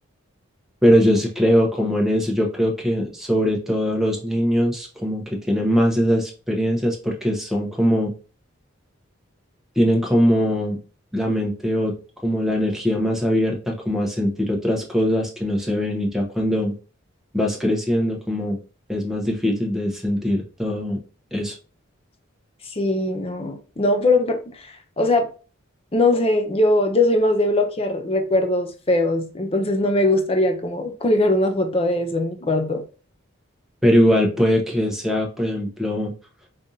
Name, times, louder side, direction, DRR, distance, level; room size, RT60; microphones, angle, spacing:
voice 1, 0.8-8.1 9.8-10.8 11.1-11.9 12.2-16.7 17.3-18.6 18.9-21.0 21.3-21.5 33.8-36.1, equal, ahead, 0.8 m, -21 dB
voice 2, 22.6-25.3 25.9-32.8, left 2 dB, 25° left, 0.6 m, -21 dB
5.1 x 2.5 x 2.7 m
head